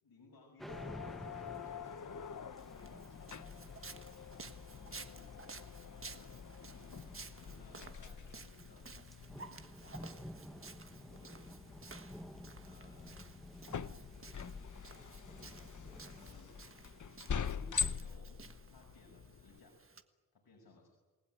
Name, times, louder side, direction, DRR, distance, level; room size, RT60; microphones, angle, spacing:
voice 1, 0.0-4.2 4.7-6.3 6.7-8.9 9.3-12.1 12.6-13.3 15.2-16.6 17.3-18.4 18.7-19.9 20.3-20.9, left 3 dB, 85° left, 0 dB, 5.9 m, -62 dB
sound 1, 0.6-18.4, equal, ahead, 1.5 m, -54 dB
sound 2, 0.7-19.6, left 6 dB, 55° left, 0.9 m, -45 dB
Walk footsteps, 2.6-20.0, right 4 dB, 35° right, 1.5 m, -55 dB
28.5 x 20.0 x 9.1 m, 1.3 s
wide cardioid pair, 145°, 37 cm